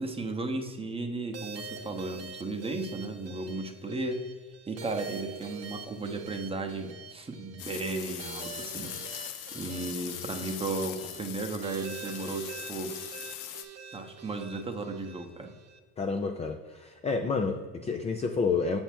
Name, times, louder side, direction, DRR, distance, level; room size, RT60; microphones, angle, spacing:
voice 1, 0.0-4.2 4.7-8.9 9.5-13.0 13.9-15.5, right 3 dB, 15° right, 4 dB, 0.8 m, -35 dB
sound 1, 1.3-15.8, right 5 dB, 35° right, 1.0 m, -45 dB
sound 2, 7.6-13.6, left 11 dB, 85° left, 0.8 m, -41 dB
voice 2, 16.0-18.8, left 4 dB, 15° left, 5 dB, 0.4 m, -29 dB
7.0 x 3.5 x 6.0 m, 1.4 s
supercardioid pair, 95°, 41 cm